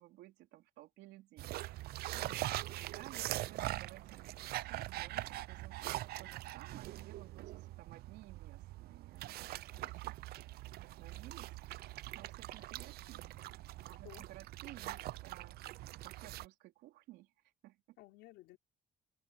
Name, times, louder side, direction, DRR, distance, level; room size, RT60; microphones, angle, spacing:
voice 1, 0.0-2.0 2.3-10.5 10.7-11.6 12.1-15.6 16.0-17.3 17.6-18.0, right 16 dB, 85° right, 4.1 m, -57 dB
sound 1, 1.4-16.5, right 16 dB, 65° right, 0.5 m, -43 dB
voice 2, 2.1-2.6 9.7-9.9 12.5-12.6 14.0-14.3 18.0-18.6, left 17 dB, 90° left, 3.7 m, -57 dB
open air
cardioid pair, 110°, 17 cm